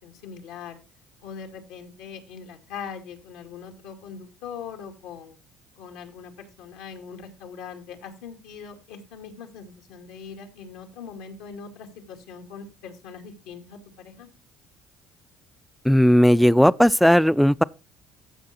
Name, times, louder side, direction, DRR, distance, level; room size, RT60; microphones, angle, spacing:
voice 1, 0.0-0.8 1.2-5.4 5.8-14.3, left 6 dB, 85° left, 2.2 m, -41 dB
voice 2, 15.8-17.6, equal, ahead, 0.4 m, -16 dB
14.0 x 6.0 x 4.3 m
supercardioid pair, 90°, 0 cm